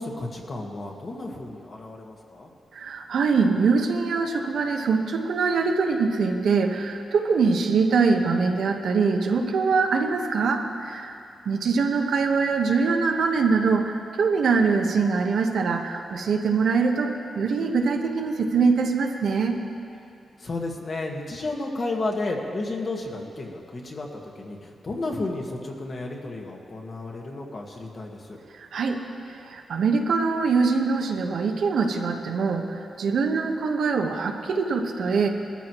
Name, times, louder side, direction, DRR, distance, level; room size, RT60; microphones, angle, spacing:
voice 1, 0.0-2.5 20.4-28.4, left 2 dB, 45° left, 0 dB, 1.6 m, -32 dB
voice 2, 2.7-11.2 11.4-19.6 28.5-29.0 29.5-35.3, right 4 dB, 80° right, 3 dB, 1.1 m, -23 dB
20.5 x 13.5 x 3.1 m, 2.5 s
wide cardioid pair, 135°, 0 cm